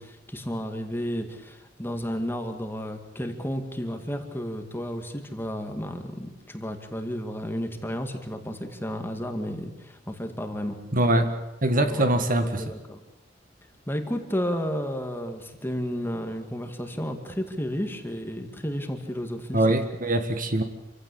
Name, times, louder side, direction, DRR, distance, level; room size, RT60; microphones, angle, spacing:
voice 1, 0.0-10.8 11.7-12.1 12.6-13.0 13.9-19.6, equal, 10° left, 5 dB, 2.2 m, -32 dB
voice 2, 10.9-11.3 11.6-12.6 19.5-20.6, right 1 dB, 45° right, 8 dB, 1.7 m, -23 dB
27.5 x 16.0 x 8.6 m, 0.97 s
head